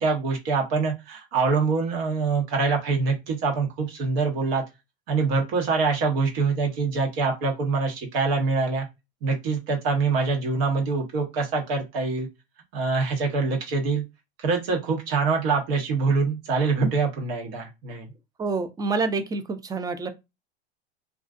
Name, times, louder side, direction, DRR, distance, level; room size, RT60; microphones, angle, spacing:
voice 1, 0.0-4.6 5.1-8.9 9.2-12.3 12.7-14.0 14.4-18.1, right 4 dB, 70° right, 1.1 m, -24 dB
voice 2, 18.4-20.1, right 4 dB, 15° right, 0.4 m, -27 dB
2.4 x 2.4 x 2.4 m
hypercardioid pair, 100°, 30 cm